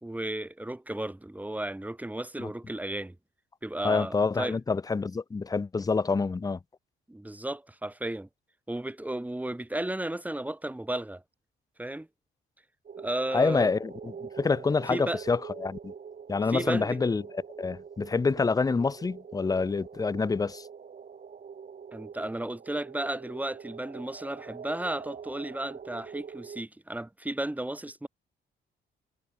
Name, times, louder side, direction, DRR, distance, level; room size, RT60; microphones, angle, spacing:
voice 1, 0.0-3.2 3.6-4.5 7.1-8.3 8.7-11.2 11.8-12.1 13.0-13.7 14.9-15.2 16.5-16.9 21.9-28.1, right 1 dB, 10° right, 1.6 m, -34 dB
voice 2, 3.8-6.6 13.3-15.9 16.3-20.7, left 4 dB, 20° left, 0.5 m, -27 dB
sound 1, 12.9-26.6, right 6 dB, 45° right, 4.2 m, -44 dB
cardioid pair, 90°, 20 cm